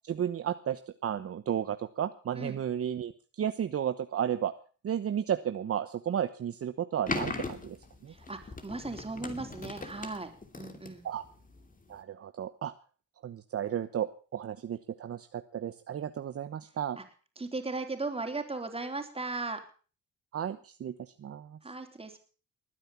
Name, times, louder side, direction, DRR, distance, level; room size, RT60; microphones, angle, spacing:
voice 1, 0.1-3.1 3.4-4.5 4.8-7.8 8.0-8.1 11.0-11.2 11.9-12.7 13.2-17.0 20.3-21.6, right 9 dB, 50° right, 10 dB, 1.1 m, -33 dB
sound 1, 7.1-12.0, left 3 dB, 25° left, 2.9 m, -39 dB
voice 2, 8.1-10.3 10.6-11.1 17.0-17.1 17.4-19.6 21.6-22.2, right 3 dB, 20° right, 6 dB, 3.9 m, -37 dB
20.5 x 9.9 x 7.2 m, 0.40 s
cardioid pair, 90°, 30 cm